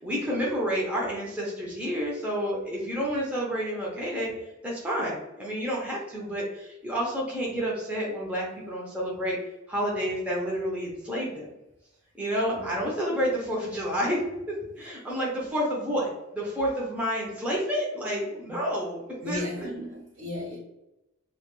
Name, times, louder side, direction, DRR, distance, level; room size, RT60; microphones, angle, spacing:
voice 1, 0.0-4.3 4.6-9.4 9.7-11.5 12.2-14.2 14.8-19.0 19.2-19.5, equal, 5° right, -5 dB, 0.5 m, -29 dB
voice 2, 12.5-12.8 13.1-13.3 15.4-15.6 18.5-18.6 19.2-20.6, left 1 dB, 70° right, -5 dB, 0.6 m, -36 dB
2.2 x 2.2 x 2.9 m, 0.93 s
head